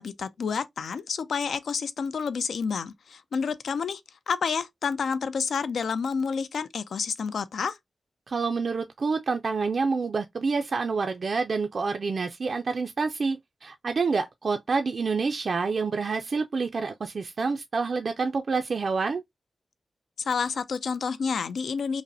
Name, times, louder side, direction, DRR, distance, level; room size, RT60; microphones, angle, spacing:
voice 1, 0.0-4.0 4.3-7.8 20.2-22.0, left 5 dB, 85° left, 0.4 m, -29 dB
voice 2, 8.3-19.2, right 4 dB, 50° right, 0.3 m, -28 dB
5.1 x 2.0 x 2.6 m
wide cardioid pair, 145°, 0 cm